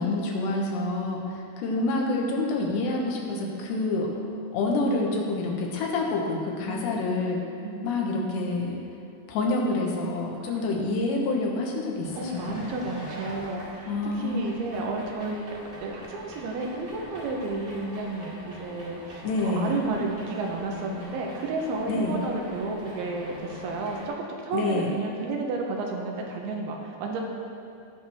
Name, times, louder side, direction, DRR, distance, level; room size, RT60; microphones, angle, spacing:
voice 1, 0.0-4.3 4.5-7.4 7.8-8.8 9.3-12.7 13.9-14.8 19.2-19.8 21.8-22.2 24.5-24.9, left 2 dB, 85° left, -1 dB, 3.4 m, -27 dB
voice 2, 6.7-7.0 7.6-8.0 10.4-10.6 12.2-24.1 24.4-27.2, right 3 dB, 75° right, 1 dB, 2.7 m, -32 dB
sound 1, 12.0-24.1, equal, 25° right, 1.6 m, -44 dB
16.5 x 6.2 x 3.5 m, 2.5 s
omnidirectional pair, 4.8 m